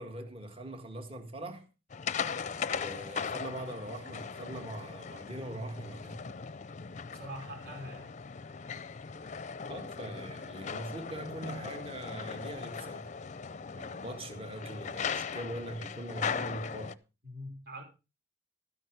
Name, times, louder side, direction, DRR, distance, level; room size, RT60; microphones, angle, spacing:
voice 1, 0.0-1.6 2.7-6.2 9.7-13.1 13.7-17.0, right 1 dB, 30° right, 1.8 m, -42 dB
sound 1, 1.9-16.9, left 6 dB, 40° left, 0.5 m, -39 dB
voice 2, 7.1-8.1 17.2-17.8, equal, 60° right, 5.4 m, -43 dB
13.0 x 10.0 x 4.8 m
head